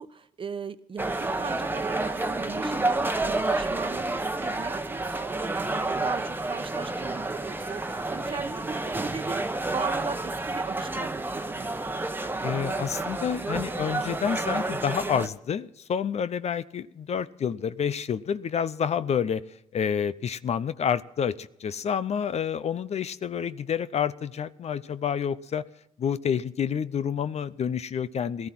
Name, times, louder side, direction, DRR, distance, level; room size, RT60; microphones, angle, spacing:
voice 1, 0.0-11.7, right 5 dB, 40° right, 11 dB, 1.0 m, -38 dB
sound 1, 1.0-15.3, right 2 dB, 15° right, 1.2 m, -30 dB
voice 2, 12.4-19.4 19.7-25.6 26.0-28.5, left 7 dB, 50° left, 15 dB, 0.7 m, -29 dB
17.5 x 13.0 x 6.0 m, 0.77 s
supercardioid pair, 60°, 14 cm